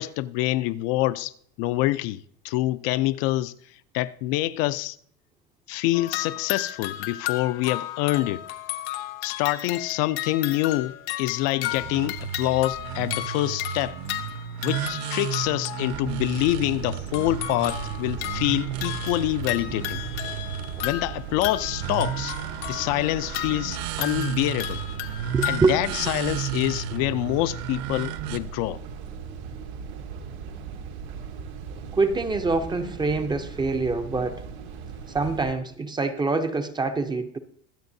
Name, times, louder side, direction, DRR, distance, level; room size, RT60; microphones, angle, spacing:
voice 1, 0.0-1.3 1.6-3.5 3.9-5.0 5.7-8.4 9.2-14.0 14.6-20.0 20.8-22.4 22.7-24.8 25.4-28.8, left 16 dB, 65° left, 0.5 m, -26 dB
sound 1, 5.9-16.2 17.1-25.6, left 14 dB, 85° left, 1.0 m, -34 dB
sound 2, 11.7-28.4, right 11 dB, 60° right, 0.7 m, -33 dB
sound 3, 15.9-35.5, right 6 dB, 80° right, 1.8 m, -38 dB
voice 2, 25.3-26.0 31.9-34.5 35.1-37.4, right 3 dB, 15° right, 0.5 m, -25 dB
23.0 x 7.8 x 2.7 m
cardioid pair, 145°, 33 cm